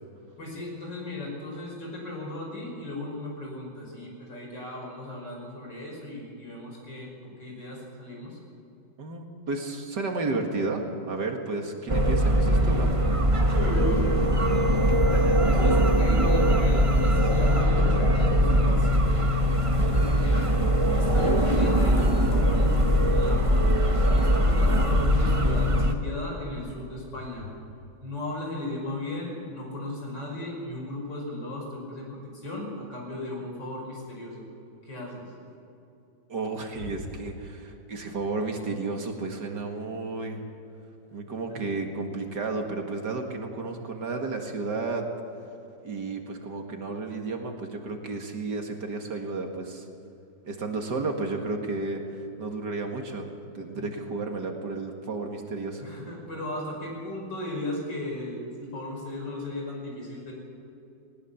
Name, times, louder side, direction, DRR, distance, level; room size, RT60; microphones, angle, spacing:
voice 1, 0.4-8.4 13.5-14.1 15.5-19.3 19.8-20.5 20.9-23.6 24.1-27.5 28.0-34.4 34.8-35.3 36.8-36.9 41.5-41.6 53.7-53.9 55.8-60.3, left 1 dB, 65° left, -1 dB, 6.4 m, -36 dB
voice 2, 9.0-13.4 15.1-15.5 36.3-40.4 41.1-45.1 45.8-49.9 50.5-53.3 53.5-55.8, right 3 dB, 60° right, 3 dB, 2.5 m, -32 dB
sound 1, 11.9-25.9, equal, 20° right, 1.0 m, -21 dB
Alarm, 13.7-17.6 18.0-18.4 19.2-19.3 19.9-20.1 22.0-22.2 24.0-24.2, right 2 dB, 20° left, 4.4 m, -45 dB
19.5 x 19.5 x 7.2 m, 2.8 s
omnidirectional pair, 2.1 m